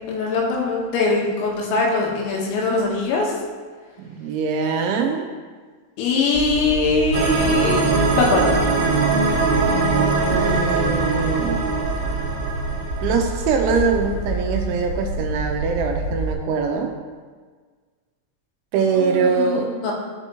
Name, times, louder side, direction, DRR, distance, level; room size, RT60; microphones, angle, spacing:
voice 1, 0.1-3.3 6.0-8.5 18.9-19.9, left 3 dB, 85° left, -1 dB, 4.0 m, -22 dB
voice 2, 4.0-5.3 10.3-11.7 13.0-16.9 18.7-19.7, right 5 dB, 80° right, 3 dB, 2.8 m, -23 dB
sound 1, 6.3-16.3, right 1 dB, 65° left, 3.1 m, -28 dB
sound 2, 7.1-14.2, right 4 dB, 60° right, 2.7 m, -22 dB
12.0 x 7.2 x 3.0 m, 1.5 s
omnidirectional pair, 5.8 m